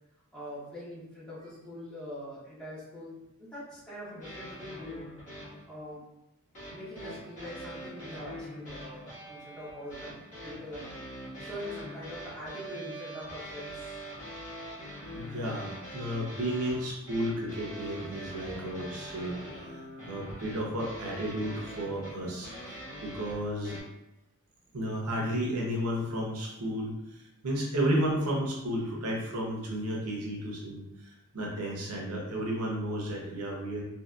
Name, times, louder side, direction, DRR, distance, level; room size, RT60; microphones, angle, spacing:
voice 1, 0.3-3.1 3.4-5.1 5.7-6.0 6.7-10.2 10.4-11.0 11.4-13.9, left 1 dB, 5° left, -10 dB, 1.0 m, -43 dB
sound 1, 4.2-5.7 6.5-23.8, equal, 35° left, 1.3 m, -43 dB
voice 2, 15.1-19.3 19.7-23.8 24.7-33.8, equal, 90° right, -2 dB, 0.7 m, -33 dB
2.8 x 2.7 x 2.3 m, 0.91 s
head